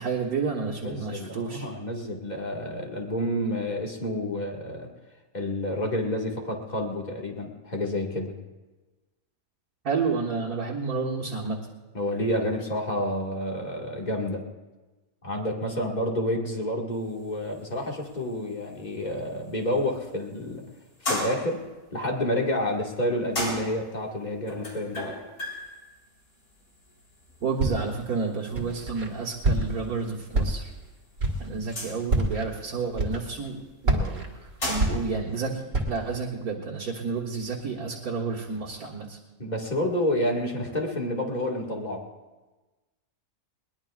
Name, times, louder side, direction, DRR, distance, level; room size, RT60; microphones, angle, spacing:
voice 1, 0.0-1.7 9.8-11.6 27.4-30.7 31.4-34.2 34.7-39.2, right 4 dB, 85° right, -4 dB, 2.0 m, -30 dB
voice 2, 0.8-4.9 5.3-8.3 11.9-14.4 15.2-20.6 21.0-21.6 21.9-25.1 39.4-42.0, left 1 dB, 30° left, 0 dB, 2.1 m, -29 dB
sound 1, 16.9-35.1, left 1 dB, 85° left, 4.2 m, -39 dB
Walk footsteps, 27.6-28.0 28.5-29.1 29.4-29.9 30.3-30.8 31.2-31.5 32.0-32.5 32.9-33.5 33.8-35.4 35.7-36.1, right 1 dB, 60° right, 2.4 m, -26 dB
21.5 x 20.5 x 2.5 m, 1.2 s
omnidirectional pair, 1.5 m